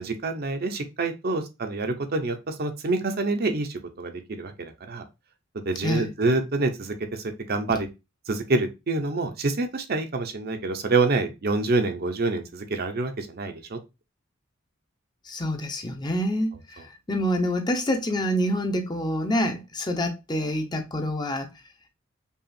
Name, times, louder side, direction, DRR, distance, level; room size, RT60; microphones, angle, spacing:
voice 1, 0.0-5.0 5.6-7.9 8.3-13.8, right 3 dB, 50° right, 0.6 m, -27 dB
voice 2, 15.2-21.5, equal, 20° left, 0.6 m, -27 dB
5.4 x 2.4 x 2.5 m
head